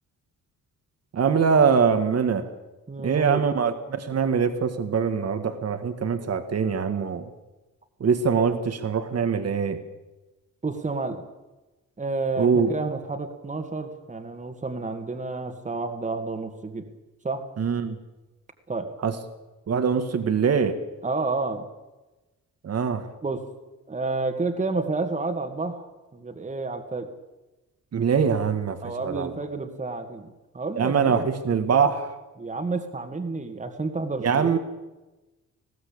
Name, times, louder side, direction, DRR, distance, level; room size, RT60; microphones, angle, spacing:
voice 1, 1.1-2.5 3.0-7.3 8.0-9.8 12.4-12.8 17.6-18.0 19.0-19.2 19.7-20.8 22.6-23.1 27.9-29.3 30.8-32.2 34.2-34.6, right 6 dB, 50° right, 9 dB, 1.8 m, -23 dB
voice 2, 2.9-3.4 10.6-11.2 12.0-16.9 17.2-17.4 18.7-18.9 21.0-21.7 23.2-23.5 23.9-27.1 28.8-31.2 32.4-34.6, right 3 dB, 20° right, 5 dB, 2.0 m, -30 dB
20.0 x 15.5 x 8.6 m, 1.1 s
cardioid pair, 125°, 32 cm